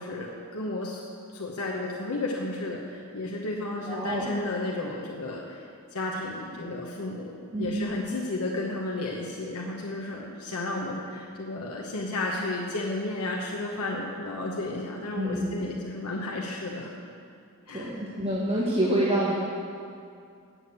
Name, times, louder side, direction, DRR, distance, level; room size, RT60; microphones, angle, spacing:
voice 1, 0.0-5.6 5.9-16.9 17.7-18.0, left 2 dB, 85° left, -2 dB, 1.0 m, -33 dB
voice 2, 3.9-4.3 7.5-8.0 15.2-15.7 17.7-19.3, right 1 dB, 25° right, -6 dB, 1.2 m, -27 dB
8.4 x 7.3 x 8.2 m, 2.4 s
head